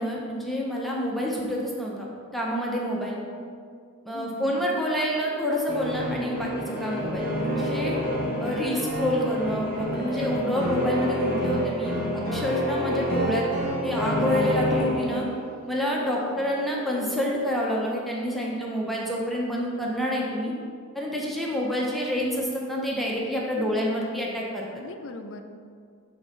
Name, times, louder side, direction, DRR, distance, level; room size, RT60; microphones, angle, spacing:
voice 1, 0.0-3.2 4.0-8.0 8.4-13.4 13.8-15.3 15.7-20.5 20.9-24.7, equal, ahead, -4 dB, 0.6 m, -28 dB
voice 2, 4.1-4.6 16.2-16.5 23.6-23.8 24.7-25.4, left 2 dB, 60° left, 6 dB, 0.5 m, -40 dB
sound 1, 5.2-17.3, right 2 dB, 70° right, 0.7 m, -46 dB
sound 2, 5.7-15.5, equal, 40° right, 1.1 m, -28 dB
5.5 x 3.6 x 5.6 m, 2.2 s
head